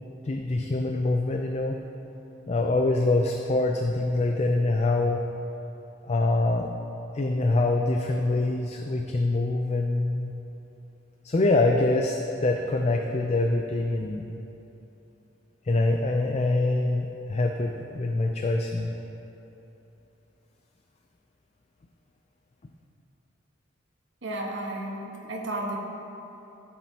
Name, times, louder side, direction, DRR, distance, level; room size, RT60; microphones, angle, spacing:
voice 1, 0.2-1.8 2.5-5.2 6.0-6.7 7.1-10.3 11.2-14.3 15.6-18.9, left 2 dB, 35° left, 3 dB, 0.4 m, -25 dB
voice 2, 24.2-25.8, right 1 dB, 70° right, -1 dB, 1.3 m, -33 dB
15.0 x 7.5 x 2.9 m, 3.0 s
head